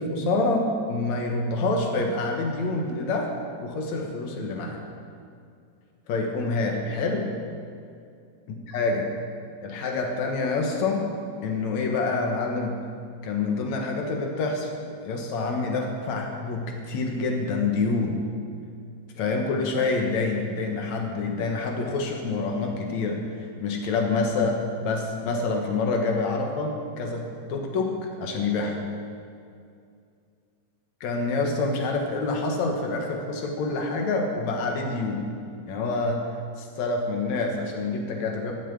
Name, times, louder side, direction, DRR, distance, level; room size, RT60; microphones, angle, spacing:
voice 1, 0.0-4.8 6.1-7.3 8.7-9.1 9.6-11.1 11.4-12.8 13.2-14.7 15.0-18.2 19.2-23.2 23.6-28.8 31.0-35.3 35.7-36.3 36.6-38.5, left 3 dB, 75° left, 2 dB, 2.6 m, -27 dB
13.0 x 6.8 x 8.5 m, 2.3 s
omnidirectional pair, 3.3 m